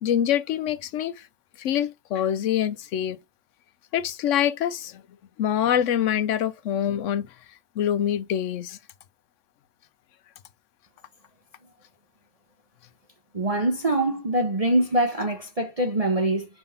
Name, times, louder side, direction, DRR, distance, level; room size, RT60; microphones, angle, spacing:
voice 1, 0.0-1.3 1.6-3.2 3.9-5.0 5.4-7.3 7.8-8.8, left 10 dB, 75° left, 1.0 m, -25 dB
voice 2, 13.3-16.5, right 1 dB, 30° right, 1.1 m, -24 dB
5.5 x 5.1 x 5.7 m
omnidirectional pair, 1.3 m